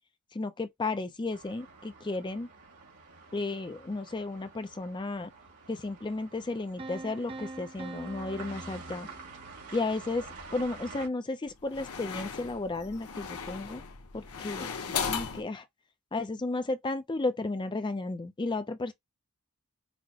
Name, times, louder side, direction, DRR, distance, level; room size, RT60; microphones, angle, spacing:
voice 1, 0.3-2.5 3.3-5.3 5.7-9.1 9.7-10.3 10.5-13.8 14.1-14.7 15.1-15.6 16.1-18.9, left 2 dB, 20° left, 0.4 m, -33 dB
sound 1, 1.3-11.1, right 4 dB, 85° right, 2.3 m, -48 dB
Piano, 6.8-9.7, right 2 dB, 25° right, 0.6 m, -44 dB
sound 2, 10.2-10.8 11.5-15.4, left 6 dB, 80° left, 0.9 m, -37 dB
6.1 x 2.1 x 2.8 m
head